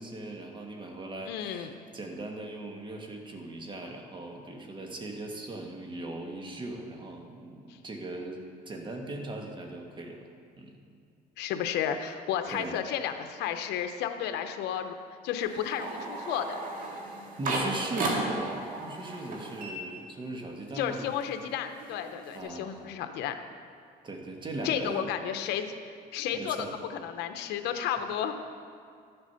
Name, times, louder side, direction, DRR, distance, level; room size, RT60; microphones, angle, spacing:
voice 1, 0.0-8.4 8.7-10.3 10.6-10.8 12.5-12.8 17.4-21.0 22.3-22.9 24.0-25.1 26.3-26.7, right 2 dB, 30° right, 2 dB, 1.6 m, -39 dB
voice 2, 1.3-1.7 11.4-14.9 15.2-16.5 20.7-23.4 24.6-25.6 26.1-26.7 27.0-28.3, left 9 dB, 85° left, 7 dB, 0.8 m, -32 dB
sound 1, 15.4-20.5 20.8-22.4, right 2 dB, 55° right, 2.1 m, -35 dB
12.5 x 8.0 x 5.7 m, 2.3 s
cardioid pair, 110°, 17 cm